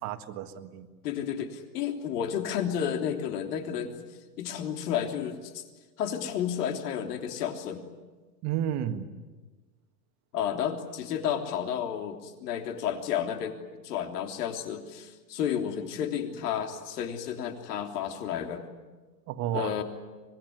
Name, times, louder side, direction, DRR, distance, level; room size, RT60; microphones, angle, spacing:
voice 1, 0.0-0.9 8.4-9.1 19.3-19.7, right 10 dB, 35° right, 8 dB, 1.7 m, -32 dB
voice 2, 1.0-3.9 4.4-5.6 6.0-7.8 10.3-13.6 13.8-18.6 19.5-19.8, left 9 dB, 70° left, 4 dB, 3.5 m, -31 dB
25.0 x 21.5 x 9.6 m, 1.3 s
supercardioid pair, 145°, 49 cm